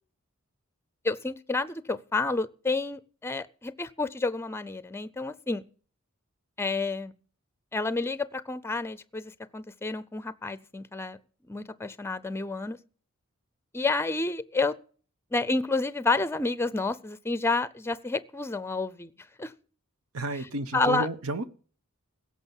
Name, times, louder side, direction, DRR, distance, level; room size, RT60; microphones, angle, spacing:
voice 1, 1.0-5.6 6.6-7.1 7.7-11.2 11.5-12.8 13.7-14.7 15.3-19.1 19.4-19.5 20.7-21.1, left 3 dB, 10° left, 0.5 m, -29 dB
voice 2, 20.1-21.5, right 2 dB, 85° right, 1.0 m, -32 dB
16.5 x 6.5 x 7.2 m
head